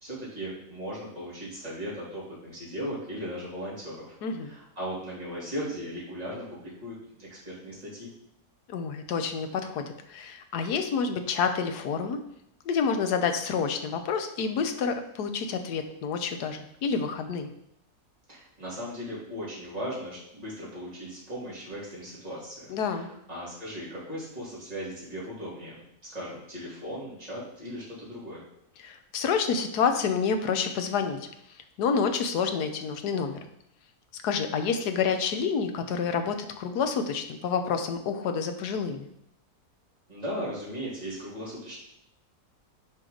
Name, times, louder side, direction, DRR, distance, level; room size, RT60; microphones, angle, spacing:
voice 1, 0.0-8.1 18.3-25.8 26.1-28.4 40.1-41.8, equal, 25° right, -8 dB, 3.3 m, -37 dB
voice 2, 8.7-12.2 12.6-17.5 22.7-23.1 28.8-31.3 31.8-33.4 34.2-39.1, left 6 dB, 90° left, 7 dB, 1.4 m, -28 dB
10.0 x 4.6 x 3.9 m, 0.77 s
omnidirectional pair, 1.7 m